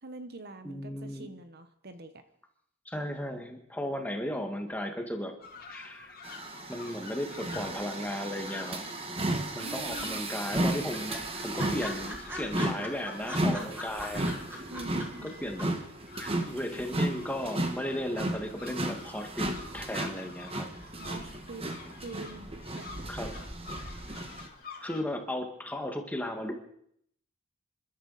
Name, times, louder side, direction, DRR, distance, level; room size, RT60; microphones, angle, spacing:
voice 1, 0.0-2.2 9.6-10.3 14.7-15.5 20.8-23.3, right 2 dB, 50° right, 9 dB, 1.1 m, -45 dB
voice 2, 0.6-1.3 2.8-5.4 5.7-6.2 6.7-8.9 9.5-14.6 15.2-15.7 16.2-20.7 23.1-23.3 24.8-26.6, left 1 dB, 5° left, 4 dB, 1.8 m, -35 dB
sound 1, 5.4-25.0, left 4 dB, 45° left, 3.2 m, -49 dB
sound 2, 6.2-24.5, right 1 dB, 25° right, 1.5 m, -34 dB
sound 3, 9.4-9.9 10.2-10.3 10.5-10.6 10.9-15.3 15.6-15.7, left 1 dB, 10° right, 4.2 m, -40 dB
27.5 x 12.5 x 4.2 m, 0.69 s
head